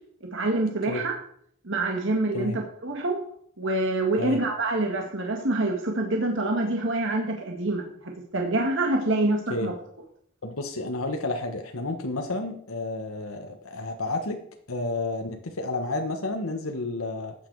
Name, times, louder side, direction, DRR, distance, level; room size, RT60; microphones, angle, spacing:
voice 1, 0.3-1.1 1.6-3.2 3.6-7.9 8.3-9.7, right 2 dB, 60° right, 2 dB, 2.0 m, -26 dB
voice 2, 10.4-14.4 14.7-17.3, left 2 dB, 90° left, 4 dB, 1.5 m, -31 dB
14.5 x 9.4 x 4.8 m, 0.65 s
head